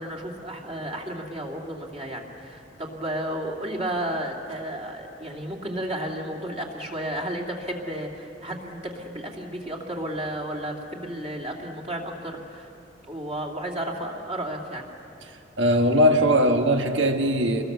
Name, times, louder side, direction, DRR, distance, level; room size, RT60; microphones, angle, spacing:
voice 1, 0.0-12.7 13.1-14.9, right 1 dB, 35° right, 0 dB, 2.7 m, -32 dB
voice 2, 15.6-17.6, equal, 85° right, 5 dB, 1.6 m, -20 dB
27.5 x 21.0 x 6.9 m, 2.8 s
head